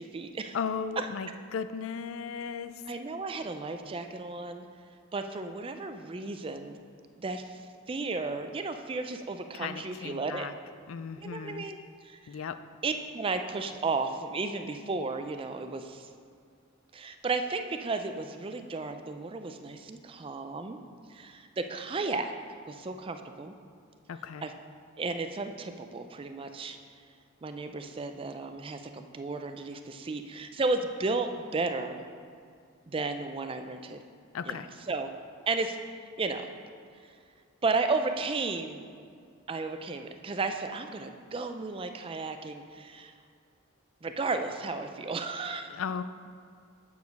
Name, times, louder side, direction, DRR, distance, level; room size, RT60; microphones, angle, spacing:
voice 1, 0.0-0.6 1.0-1.1 2.9-4.6 5.1-6.8 7.2-7.6 7.9-10.5 11.2-11.8 12.0-12.2 12.8-16.1 16.9-20.8 21.1-22.3 22.7-23.5 24.4-24.5 25.0-26.8 27.4-32.0 32.9-34.0 34.4-34.6 34.9-35.1 35.5-35.8 36.2-36.4 37.6-38.8 39.5-43.1 44.0-45.7, right 3 dB, 25° right, 7 dB, 0.4 m, -33 dB
voice 2, 0.5-2.8 9.5-10.5 10.9-11.6 12.3-12.6 24.1-24.5 34.3-34.7 45.7-46.0, left 6 dB, 75° left, 12 dB, 0.4 m, -36 dB
8.2 x 4.8 x 5.2 m, 2.3 s
head